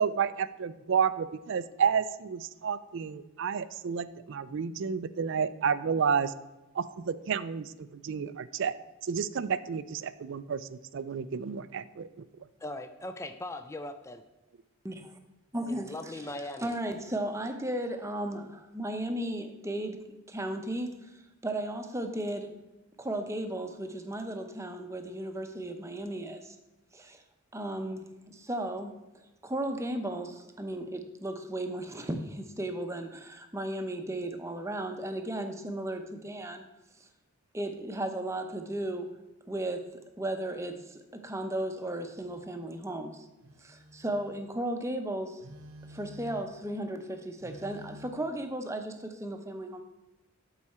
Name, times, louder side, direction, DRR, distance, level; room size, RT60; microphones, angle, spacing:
voice 1, 0.0-6.3 6.7-8.7 9.0-12.1, right 6 dB, 55° right, 15 dB, 0.4 m, -30 dB
voice 2, 12.6-14.2 15.7-16.8, left 1 dB, 15° left, 8 dB, 0.4 m, -39 dB
voice 3, 14.8-15.2 15.5-16.2 16.6-20.0 20.3-21.1 21.4-22.5 23.0-26.6 26.9-27.2 27.5-28.9 29.4-36.7 37.5-39.1 39.5-39.8 40.2-43.3 43.6-45.4 45.9-49.8, right 1 dB, 15° right, 6 dB, 0.7 m, -35 dB
Telephone, 42.2-42.5 43.4-44.5 45.4-46.6 47.4-48.1, left 1 dB, 75° right, 0.9 m, -49 dB
11.5 x 4.8 x 4.3 m, 1.0 s
head